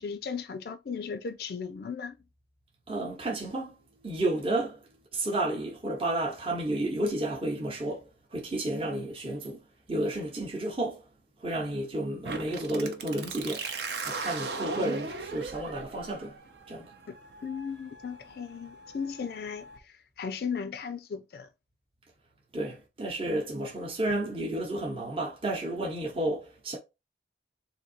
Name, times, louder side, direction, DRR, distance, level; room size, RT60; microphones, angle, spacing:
voice 1, 0.0-2.2 17.1-17.2 17.4-21.5, left 6 dB, 55° left, 0.3 m, -36 dB
voice 2, 2.9-3.8 4.0-4.8 5.1-9.6 9.9-11.0 11.4-13.7 14.0-16.4 16.7-16.9 22.5-26.8, right 1 dB, 30° right, 0.9 m, -31 dB
sound 1, 12.2-19.8, right 4 dB, 65° right, 0.7 m, -39 dB
3.8 x 2.7 x 4.1 m
head